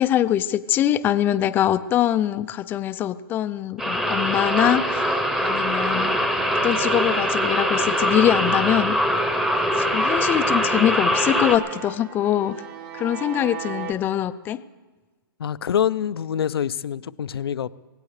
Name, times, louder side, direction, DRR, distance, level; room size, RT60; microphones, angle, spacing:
voice 1, 0.0-6.3 6.6-9.0 9.8-12.6 12.9-14.6, left 11 dB, 15° left, 14 dB, 0.4 m, -23 dB
sound 1, 3.8-11.6, equal, 5° right, 1.0 m, -23 dB
sound 2, 4.4-13.9, right 7 dB, 35° right, 1.4 m, -35 dB
voice 2, 15.4-17.7, left 9 dB, 80° left, 17 dB, 0.6 m, -25 dB
24.5 x 17.5 x 3.3 m, 1.3 s
hypercardioid pair, 150°, 13 cm